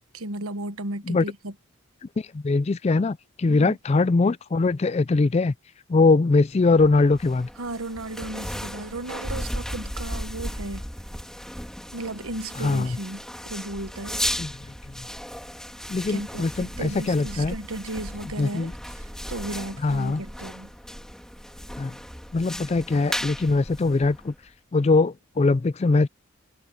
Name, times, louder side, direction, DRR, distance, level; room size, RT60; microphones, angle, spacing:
voice 1, 0.1-1.5 3.5-3.8 7.6-10.8 11.9-14.2 16.1-20.7, right 2 dB, 85° right, 1.4 m, -35 dB
voice 2, 2.2-5.5 5.9-7.5 12.6-13.0 14.4-14.5 15.9-17.5 18.4-18.7 19.8-20.2 21.8-21.9 22.3-24.3 24.7-26.1, left 3 dB, 30° left, 0.3 m, -22 dB
sound 1, 6.6-24.5, equal, 5° left, 2.8 m, -36 dB
head